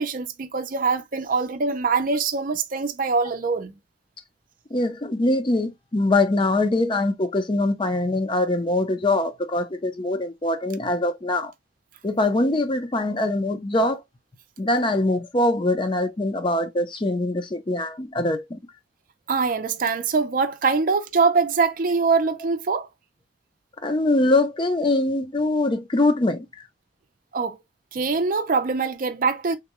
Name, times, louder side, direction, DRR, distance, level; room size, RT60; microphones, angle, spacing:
voice 1, 0.0-3.7 19.3-22.9 27.3-27.6 27.9-29.6, right 4 dB, 50° right, 0.5 m, -23 dB
voice 2, 4.7-11.5 12.0-14.0 14.6-18.6 23.8-26.5, left 2 dB, 25° left, 0.5 m, -23 dB
3.6 x 2.2 x 2.9 m
head